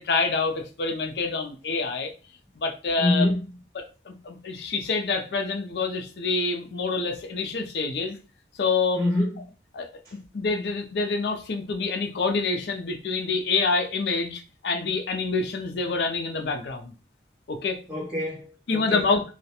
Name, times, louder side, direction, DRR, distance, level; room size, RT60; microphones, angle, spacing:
voice 1, 0.0-2.1 2.6-3.3 3.7-8.2 8.6-9.0 9.7-16.9 17.5-17.8 18.7-19.2, left 4 dB, 70° left, 5 dB, 0.4 m, -27 dB
voice 2, 3.0-3.4 8.9-9.4 17.9-19.0, left 1 dB, 15° right, -10 dB, 0.9 m, -25 dB
2.3 x 2.1 x 2.8 m, 0.35 s
head